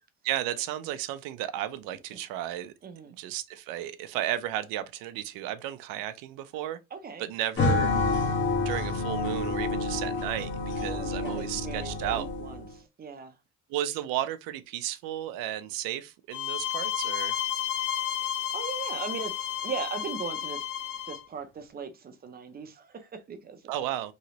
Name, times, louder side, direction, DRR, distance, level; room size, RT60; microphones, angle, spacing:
voice 1, 0.2-2.7 3.2-6.8 7.2-7.9 8.6-12.3 13.7-17.4 23.7-24.1, right 12 dB, 90° right, 0.6 m, -33 dB
voice 2, 2.8-3.1 6.9-7.3 10.8-13.3 18.2-20.6 21.0-23.7, right 5 dB, 30° right, 0.5 m, -39 dB
sound 1, 7.6-12.7, left 3 dB, 35° left, 0.8 m, -28 dB
sound 2, 16.3-21.2, left 11 dB, 70° left, 0.6 m, -32 dB
3.1 x 2.9 x 2.8 m
cardioid pair, 140°, 33 cm